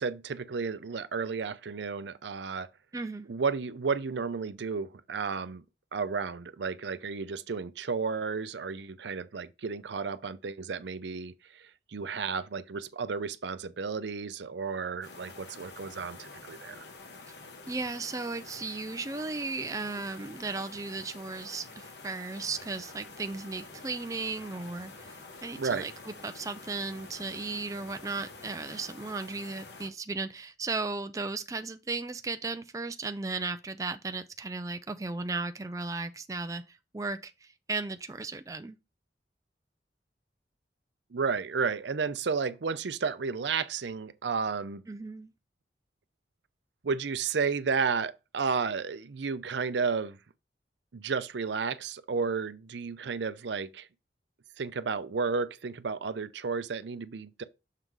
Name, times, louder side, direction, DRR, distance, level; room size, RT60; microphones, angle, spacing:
voice 1, 0.0-2.7 3.3-5.6 5.9-16.8 25.6-25.9 41.1-44.8 46.8-50.2 50.9-53.9 54.6-57.4, right 5 dB, 80° right, 0.5 m, -32 dB
voice 2, 2.9-3.3 17.7-38.8 44.9-45.3, right 3 dB, 20° right, 0.3 m, -36 dB
sound 1, 15.0-29.9, left 3 dB, 70° left, 1.2 m, -48 dB
sound 2, 22.4-29.0, right 2 dB, 40° right, 1.6 m, -60 dB
6.6 x 3.8 x 4.6 m
head